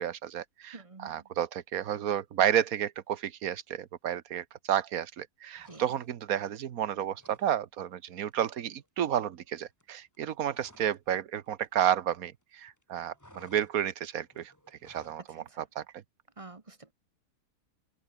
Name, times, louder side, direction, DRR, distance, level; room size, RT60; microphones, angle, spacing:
voice 1, 0.0-14.5 14.8-15.8, right 10 dB, 65° right, 1.4 m, -31 dB
voice 2, 0.7-1.2 5.7-5.8 15.5-15.6 16.4-16.9, right 3 dB, 25° right, 1.0 m, -48 dB
sound 1, 5.6-6.4 6.7-7.5 7.8-8.0 8.3-11.1 11.3-12.4 12.7-15.3, left 1 dB, 10° left, 4.4 m, -59 dB
open air
omnidirectional pair, 1.7 m